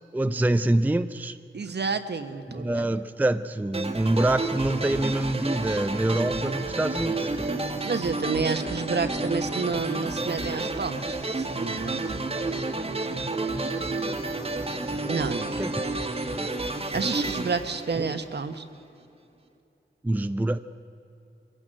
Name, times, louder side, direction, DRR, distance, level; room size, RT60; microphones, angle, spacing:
voice 1, 0.1-1.4 2.5-7.6 15.6-15.8 18.0-18.1 20.0-20.6, right 1 dB, 10° right, 10 dB, 0.5 m, -25 dB
voice 2, 1.5-2.9 7.8-12.4 15.1-15.6 16.9-18.6, right 4 dB, 60° right, 8 dB, 1.2 m, -30 dB
sound 1, 3.7-18.6, right 2 dB, 30° right, 1.5 m, -30 dB
23.0 x 16.5 x 7.7 m, 2.8 s
wide cardioid pair, 120°, 20 cm